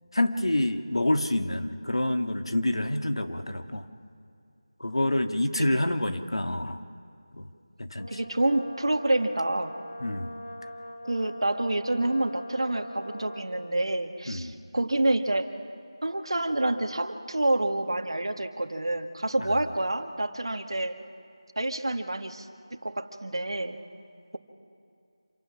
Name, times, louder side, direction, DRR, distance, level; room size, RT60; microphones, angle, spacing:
voice 1, 0.1-3.9 4.8-6.8 7.3-7.5 7.8-8.2 10.0-10.3 10.6-10.7 14.3-14.6 19.4-19.7, left 1 dB, 90° left, 6 dB, 1.7 m, -27 dB
voice 2, 5.2-5.9 8.1-9.7 11.1-15.5 16.0-20.9 21.6-23.8, right 1 dB, 70° right, 6 dB, 1.8 m, -28 dB
Brass instrument, 8.0-13.8, equal, 50° left, 2.3 m, -42 dB
27.0 x 17.0 x 6.3 m, 2.5 s
figure-of-eight pair, 175°, 3 cm